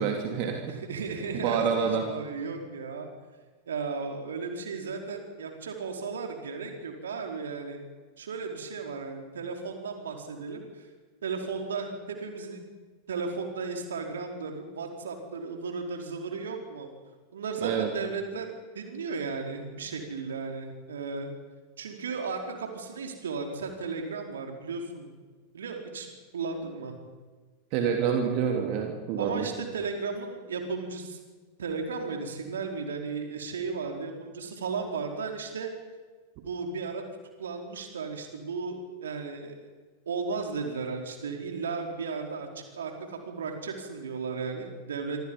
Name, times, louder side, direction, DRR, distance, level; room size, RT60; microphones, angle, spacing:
voice 1, 0.0-0.8 1.4-2.0 17.6-17.9 27.7-29.5, right 7 dB, 45° right, 3 dB, 3.3 m, -27 dB
voice 2, 0.7-3.1 3.7-7.8 8.2-10.9 11.2-12.7 13.1-16.9 17.3-21.3 21.8-25.1 25.5-26.9 29.2-31.2 31.6-35.7 36.4-37.0 37.4-39.5 40.1-45.2, right 4 dB, 65° right, 3 dB, 4.5 m, -35 dB
26.5 x 26.0 x 5.6 m, 1.4 s
figure-of-eight pair, 90°, 0 cm